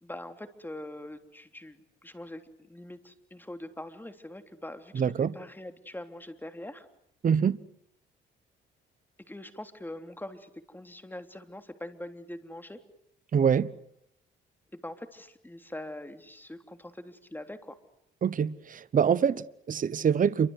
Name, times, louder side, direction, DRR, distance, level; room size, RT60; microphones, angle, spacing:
voice 1, 0.0-2.4 2.7-6.9 9.3-12.8 14.7-17.8, left 1 dB, 10° left, 3.4 m, -43 dB
voice 2, 4.9-5.3 7.2-7.6 13.3-13.7 18.2-20.5, right 7 dB, 40° right, 1.1 m, -25 dB
29.0 x 24.5 x 8.2 m
cardioid pair, 90°, 20 cm